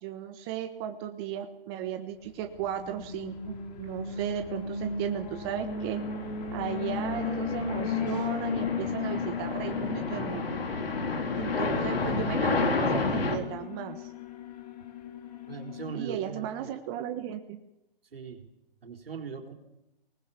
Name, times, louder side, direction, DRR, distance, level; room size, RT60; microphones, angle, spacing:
voice 1, 0.0-6.0 6.5-10.6 11.3-14.1 15.9-17.6, right 10 dB, 25° right, 6 dB, 1.3 m, -35 dB
Alarm, 2.5-16.0, left 6 dB, 45° left, 2.9 m, -36 dB
sound 1, 5.5-13.4, left 3 dB, 80° left, 3.6 m, -31 dB
voice 2, 15.5-16.8 18.1-18.5 18.8-19.5, right 6 dB, 75° right, 4 dB, 4.0 m, -40 dB
22.0 x 19.5 x 6.9 m, 0.90 s
hypercardioid pair, 145°, 29 cm